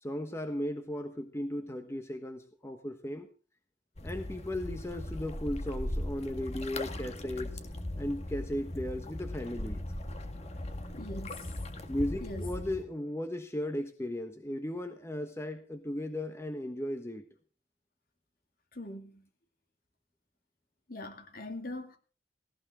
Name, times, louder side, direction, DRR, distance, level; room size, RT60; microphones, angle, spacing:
voice 1, 0.0-3.3 4.0-7.6 8.0-9.8 11.9-17.2, left 1 dB, 15° left, 7 dB, 1.2 m, -36 dB
sound 1, 4.0-12.8, left 1 dB, 40° left, 1.8 m, -38 dB
voice 2, 10.9-11.6 12.2-12.4 18.7-19.3 20.9-22.0, left 1 dB, 55° left, 5 dB, 2.6 m, -42 dB
18.0 x 17.0 x 3.8 m, 0.39 s
head